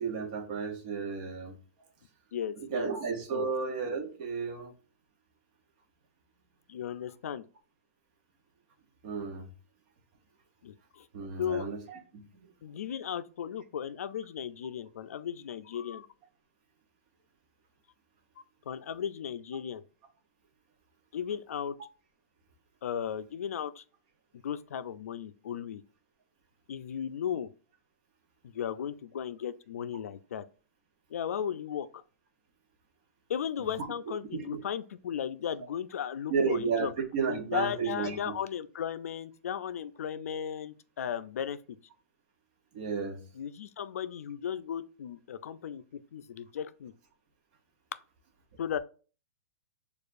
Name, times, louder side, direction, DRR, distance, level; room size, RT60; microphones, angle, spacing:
voice 1, 0.0-1.5 2.6-4.7 9.0-9.5 11.1-12.3 34.3-34.6 36.3-38.4 42.7-43.2, right 5 dB, 30° right, 0.8 m, -33 dB
voice 2, 2.3-2.9 3.3-3.5 6.7-7.5 10.6-11.1 11.4-11.7 12.6-16.1 18.7-19.8 21.1-21.8 22.8-23.8 24.4-25.8 26.7-27.5 28.4-30.4 31.1-32.0 33.3-36.9 37.3-41.6 43.3-46.9 48.6-48.8, left 8 dB, 75° left, 0.4 m, -36 dB
6.5 x 2.4 x 2.5 m
hypercardioid pair, 175°, 8 cm